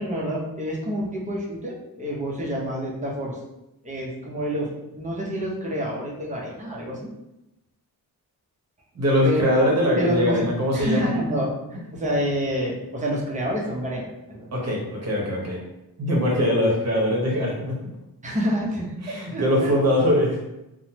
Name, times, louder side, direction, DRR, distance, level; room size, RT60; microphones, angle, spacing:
voice 1, 0.0-3.4 3.8-7.1 9.2-9.6 10.0-10.5 10.7-14.5 18.2-18.9 19.3-19.8, equal, 20° right, -3 dB, 0.5 m, -28 dB
voice 2, 8.9-11.1 14.5-15.6 16.0-17.7 19.0-20.5, equal, 45° right, -2 dB, 0.8 m, -22 dB
3.1 x 2.0 x 2.8 m, 0.92 s
wide cardioid pair, 175°, 37 cm